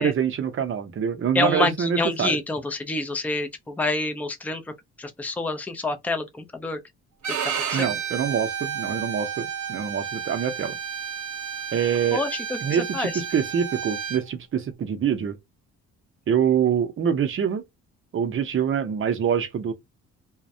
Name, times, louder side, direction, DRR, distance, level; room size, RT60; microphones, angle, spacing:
voice 1, 0.0-2.4 7.7-10.8 11.7-12.2 12.6-15.4 16.3-17.6 18.1-19.7, right 8 dB, 45° right, 0.6 m, -25 dB
voice 2, 1.3-4.6 5.0-6.8 7.7-7.9 12.1-12.6 12.9-13.1, left 2 dB, 5° left, 0.4 m, -27 dB
Bowed string instrument, 7.2-14.2, right 7 dB, 75° right, 0.8 m, -31 dB
2.2 x 2.1 x 2.6 m
cardioid pair, 90°, 30 cm